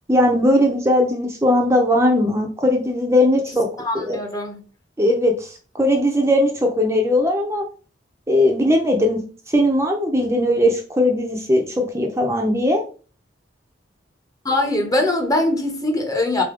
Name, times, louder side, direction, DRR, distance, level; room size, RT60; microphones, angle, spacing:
voice 1, 0.1-3.7 3.9-4.2 5.0-5.5 5.7-7.6 8.3-9.2 9.5-12.8, left 1 dB, 15° right, 0.6 m, -18 dB
voice 2, 3.8-4.6 14.4-16.4, left 2 dB, 20° left, 0.8 m, -22 dB
3.8 x 3.4 x 3.7 m
head